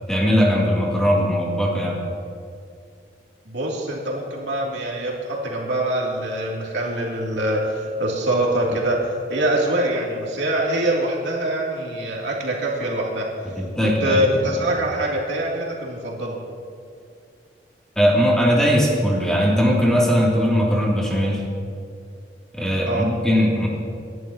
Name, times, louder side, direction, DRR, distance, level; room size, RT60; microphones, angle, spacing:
voice 1, 0.1-2.0 13.8-14.2 18.0-21.4 22.5-23.7, equal, 5° left, -4 dB, 2.6 m, -19 dB
voice 2, 3.4-9.0 9.3-13.3 13.8-16.4 22.9-23.1, right 1 dB, 80° right, -3 dB, 2.7 m, -24 dB
27.0 x 11.0 x 2.9 m, 2.3 s
head